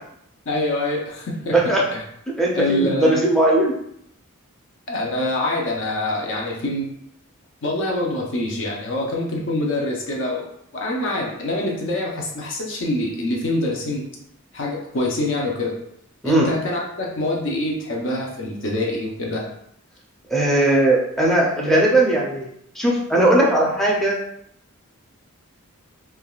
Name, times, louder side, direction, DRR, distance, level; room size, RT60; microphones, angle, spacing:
voice 1, 0.5-1.5 1.9-2.0 2.6-3.2 4.9-6.9 7.6-10.5 10.7-14.0 14.5-15.7 16.2-19.4, left 1 dB, 60° left, -2 dB, 0.6 m, -25 dB
voice 2, 2.4-3.7 16.2-16.5 20.3-22.5 22.8-24.2, right 1 dB, ahead, -4 dB, 0.5 m, -18 dB
3.3 x 2.3 x 2.3 m, 0.73 s
head